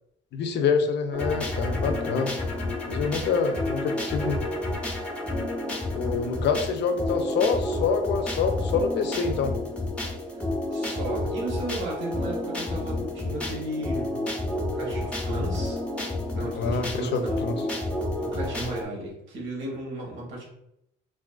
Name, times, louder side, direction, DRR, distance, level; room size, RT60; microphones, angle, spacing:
voice 1, 0.3-2.3 2.9-4.4 5.9-9.5 16.5-17.5, left 5 dB, 60° left, 6 dB, 0.4 m, -26 dB
sound 1, 1.1-18.8, left 2 dB, 5° left, 0.6 m, -30 dB
voice 2, 10.7-14.2 14.7-15.8 16.4-17.6 18.2-20.4, right 1 dB, 70° right, -2 dB, 1.0 m, -35 dB
2.3 x 2.3 x 2.3 m, 0.80 s
cardioid pair, 90°, 20 cm